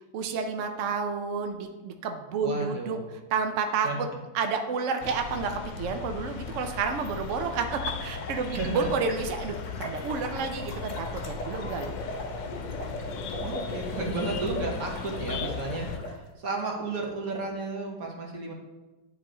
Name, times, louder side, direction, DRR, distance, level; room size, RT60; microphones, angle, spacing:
voice 1, 0.1-3.0 3.3-4.1 4.3-11.9, right 5 dB, 75° right, 5 dB, 0.6 m, -30 dB
voice 2, 2.4-3.0 3.8-4.0 8.5-8.9 13.4-18.5, right 3 dB, 55° right, 0 dB, 1.5 m, -33 dB
sound 1, 5.0-16.0, left 7 dB, 85° left, 1.3 m, -37 dB
sound 2, 7.8-16.1, equal, 65° left, 0.4 m, -38 dB
9.8 x 3.4 x 3.7 m, 1.1 s
omnidirectional pair, 1.9 m